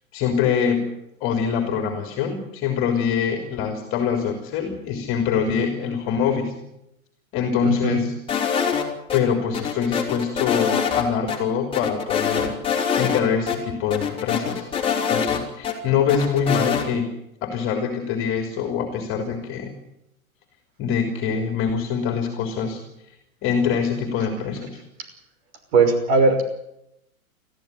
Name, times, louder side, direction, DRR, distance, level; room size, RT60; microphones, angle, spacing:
voice 1, 0.1-0.9 1.2-6.6 7.3-8.1 9.1-14.7 15.1-17.1 17.4-19.7 20.8-22.8 23.4-24.8, left 7 dB, 30° left, 5 dB, 3.4 m, -24 dB
voice 2, 7.6-8.0 25.7-26.4, right 3 dB, 45° right, 7 dB, 5.9 m, -18 dB
sound 1, 8.3-9.2 9.5-11.0 11.3-11.4 11.7-13.2 13.5-13.6 13.9-15.7 16.1-16.9, left 7 dB, 10° left, 3.6 m, -24 dB
20.5 x 14.5 x 9.8 m, 0.83 s
hypercardioid pair, 130°, 43 cm